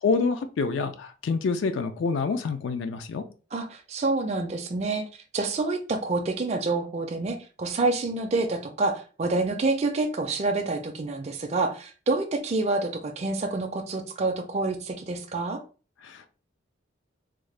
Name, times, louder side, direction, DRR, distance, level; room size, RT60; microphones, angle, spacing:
voice 1, 0.0-3.2 16.0-16.3, left 4 dB, 70° left, 9 dB, 0.3 m, -27 dB
voice 2, 3.5-15.6, right 3 dB, 35° right, 3 dB, 0.3 m, -27 dB
3.6 x 2.1 x 3.1 m, 0.37 s
head